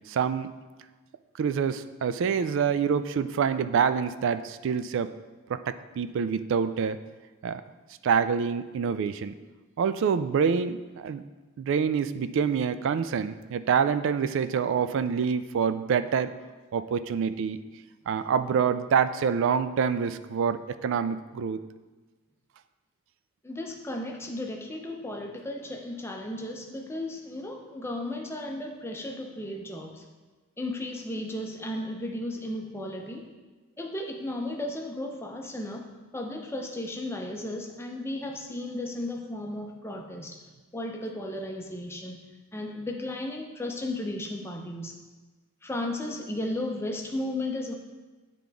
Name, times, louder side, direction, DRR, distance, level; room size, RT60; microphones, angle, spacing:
voice 1, 0.1-0.5 1.4-5.1 5.5-7.0 7.4-7.6 8.0-9.4 9.8-11.2 11.6-16.3 16.7-17.6 18.1-21.6, right 6 dB, 60° right, 12 dB, 0.3 m, -26 dB
voice 2, 23.4-30.0 30.6-33.3 33.8-35.9 36.1-40.4 40.7-42.2 42.5-44.9 45.6-47.7, left 1 dB, 10° left, 2 dB, 0.6 m, -34 dB
9.3 x 3.8 x 3.5 m, 1.2 s
head